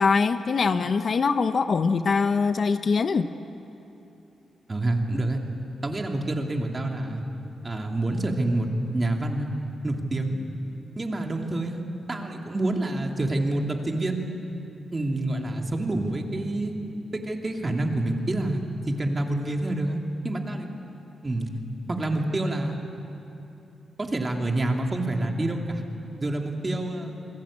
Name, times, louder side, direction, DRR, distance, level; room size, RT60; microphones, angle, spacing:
voice 1, 0.0-3.3, left 5 dB, 50° left, 10 dB, 0.8 m, -23 dB
voice 2, 4.7-5.4 5.8-7.2 7.6-9.5 9.8-10.4 11.0-11.8 12.1-14.3 14.9-16.8 17.1-18.6 18.9-20.7 21.2-21.5 21.9-22.8 24.0-25.8 26.2-27.1, right 2 dB, 25° right, 2 dB, 2.7 m, -27 dB
28.5 x 21.0 x 8.7 m, 2.9 s
cardioid pair, 110°, 0 cm